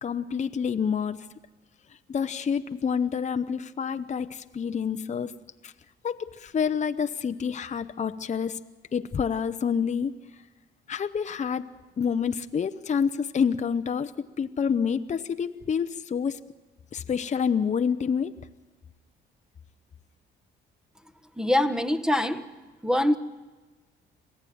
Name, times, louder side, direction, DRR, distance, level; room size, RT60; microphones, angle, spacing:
voice 1, 0.0-1.3 2.1-5.4 5.6-5.7 6.0-8.6 8.9-10.2 10.9-11.7 12.0-16.4 16.9-18.4, left 6 dB, 35° left, 0.8 m, -28 dB
voice 2, 21.4-22.5 22.8-23.2, left 1 dB, 5° right, 1.3 m, -23 dB
26.5 x 16.5 x 9.4 m
cardioid pair, 90°, 20 cm